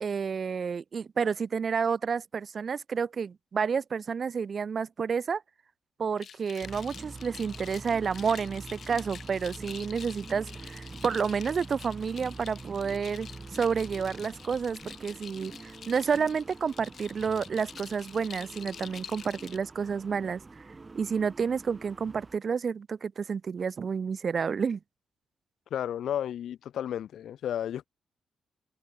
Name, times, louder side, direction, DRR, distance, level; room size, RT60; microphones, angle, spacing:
voice 1, 0.0-5.4 6.0-13.3 13.5-20.4 20.9-24.8, right 6 dB, 50° right, 0.5 m, -30 dB
sound 1, 6.2-19.6, left 7 dB, 60° left, 6.8 m, -47 dB
sound 2, 6.6-22.4, right 3 dB, 25° right, 2.0 m, -46 dB
voice 2, 25.7-27.9, left 10 dB, 80° left, 0.8 m, -32 dB
open air
cardioid pair, 85°, 0 cm